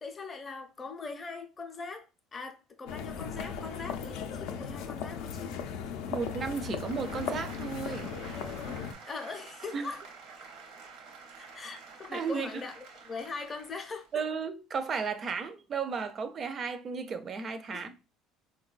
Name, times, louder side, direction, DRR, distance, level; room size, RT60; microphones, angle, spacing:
voice 1, 0.0-5.6 9.0-10.0 11.3-14.1 17.7-17.8, left 4 dB, 25° left, 0.5 m, -41 dB
sound 1, 2.8-8.9, left 7 dB, 75° left, 0.4 m, -37 dB
voice 2, 6.1-8.1 9.7-9.9 12.1-12.5 14.1-17.9, right 5 dB, 35° right, 0.4 m, -34 dB
sound 2, 6.1-14.1, right 5 dB, 70° right, 0.7 m, -50 dB
3.7 x 2.2 x 2.3 m
cardioid pair, 120°, 0 cm